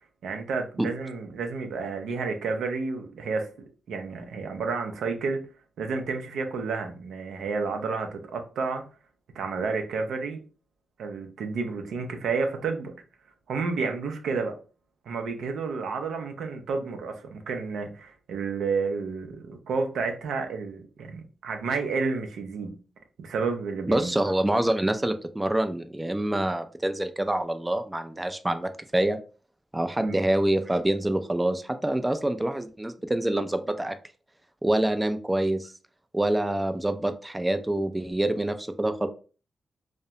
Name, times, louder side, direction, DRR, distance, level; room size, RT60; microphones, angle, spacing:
voice 1, 0.2-3.5 3.9-5.4 5.8-8.8 9.4-10.4 11.0-12.9 13.5-14.6 15.1-22.7 23.2-24.1 30.0-30.2, right 4 dB, 80° right, 5 dB, 0.4 m, -30 dB
voice 2, 23.9-29.2 29.7-34.0 34.6-35.7 36.1-39.1, right 1 dB, 15° right, 9 dB, 0.3 m, -26 dB
2.3 x 2.1 x 2.8 m, 0.36 s
supercardioid pair, 45°, 0 cm